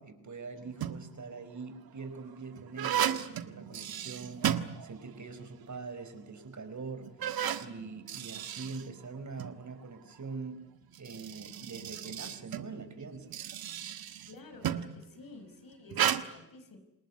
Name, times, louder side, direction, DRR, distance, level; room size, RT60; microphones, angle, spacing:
voice 1, 0.0-4.5 4.8-7.1 7.5-10.7 11.0-13.4, right 4 dB, 50° right, 10 dB, 4.8 m, -43 dB
sound 1, 0.6-1.2 1.9-5.3 5.6-5.7 6.4-6.5 7.0-9.6 10.8-15.0 15.9-16.2, right 10 dB, 75° right, 1.5 m, -34 dB
voice 2, 14.3-16.8, left 3 dB, 65° left, 8 dB, 5.4 m, -51 dB
29.0 x 19.5 x 9.5 m, 0.87 s
supercardioid pair, 40°, 37 cm